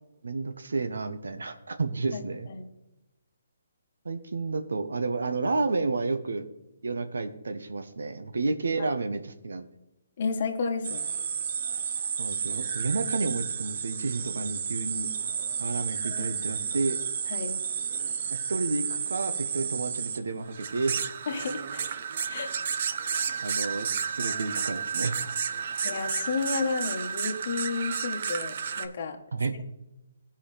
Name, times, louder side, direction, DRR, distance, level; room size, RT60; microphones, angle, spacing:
voice 1, 0.2-2.5 4.0-6.5 6.8-9.7 12.2-15.1 15.6-17.0 18.3-21.0 23.4-25.2 29.3-29.5, right 3 dB, 90° right, 8 dB, 1.0 m, -31 dB
voice 2, 2.1-2.7 10.2-11.0 16.0-16.4 17.3-17.6 21.3-22.0 22.3-22.5 25.8-29.2, left 4 dB, 40° left, 2 dB, 1.3 m, -32 dB
sound 1, 10.8-28.9, right 7 dB, 45° right, 0.6 m, -32 dB
16.5 x 5.5 x 3.3 m, 0.95 s
hypercardioid pair, 165°, 0 cm